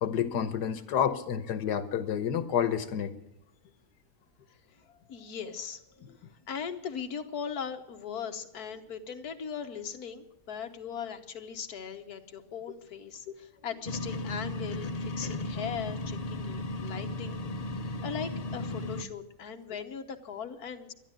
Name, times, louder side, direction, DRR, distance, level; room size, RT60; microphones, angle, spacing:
voice 1, 0.0-3.1 17.8-17.9, left 8 dB, 85° left, 11 dB, 1.6 m, -29 dB
voice 2, 5.1-6.1 6.5-20.9, left 7 dB, 65° left, 5 dB, 1.6 m, -39 dB
sound 1, 13.9-19.0, left 2 dB, 45° left, 0.5 m, -35 dB
12.5 x 11.0 x 9.0 m, 0.86 s
omnidirectional pair, 1.7 m